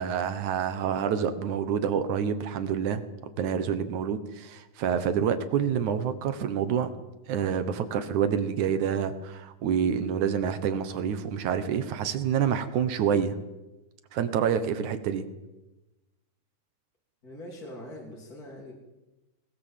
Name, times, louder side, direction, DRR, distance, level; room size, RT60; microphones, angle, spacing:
voice 1, 0.0-3.0 3.4-6.9 7.3-13.3 14.1-15.3, right 8 dB, 65° right, 11 dB, 2.1 m, -27 dB
voice 2, 17.2-18.7, left 1 dB, 25° left, -2 dB, 3.1 m, -42 dB
20.0 x 19.5 x 7.5 m, 1.1 s
omnidirectional pair, 4.7 m